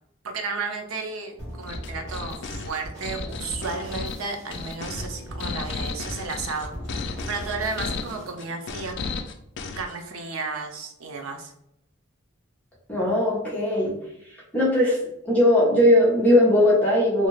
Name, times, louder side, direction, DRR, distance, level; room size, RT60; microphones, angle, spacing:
voice 1, 0.2-6.7 7.3-8.9 9.8-11.5, right 4 dB, 80° right, 5 dB, 0.5 m, -33 dB
sound 1, 1.4-8.5, equal, 15° right, 1.1 m, -38 dB
sound 2, 1.7-9.9, left 4 dB, 55° left, 0.3 m, -34 dB
voice 2, 12.9-13.9 14.5-15.0 15.2-17.3, left 1 dB, 5° left, -7 dB, 0.8 m, -19 dB
2.7 x 2.4 x 3.1 m, 0.76 s
head